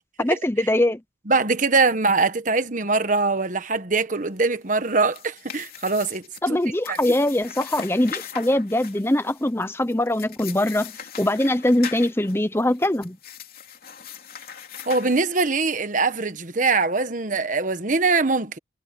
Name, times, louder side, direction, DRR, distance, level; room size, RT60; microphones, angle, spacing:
voice 1, 0.2-1.0 6.4-10.9 11.2-13.2, left 1 dB, 15° left, 0.8 m, -22 dB
voice 2, 1.3-6.6 6.9-7.1 14.9-18.6, right 3 dB, 45° right, 1.3 m, -22 dB
sound 1, 4.8-15.7, left 8 dB, 50° left, 3.2 m, -40 dB
head